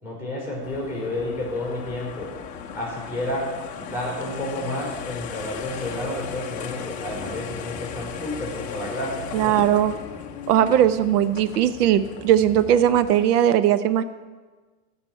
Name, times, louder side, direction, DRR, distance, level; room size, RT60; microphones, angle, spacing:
voice 1, 0.0-2.3 2.7-3.5 3.8-9.6, left 1 dB, 5° right, -3 dB, 4.2 m, -30 dB
sound 1, 0.6-13.3, left 7 dB, 15° left, 0.7 m, -37 dB
voice 2, 9.3-9.9 10.5-14.0, right 11 dB, 75° right, 13 dB, 0.9 m, -19 dB
14.5 x 6.1 x 9.0 m, 1.4 s
supercardioid pair, 160°, 47 cm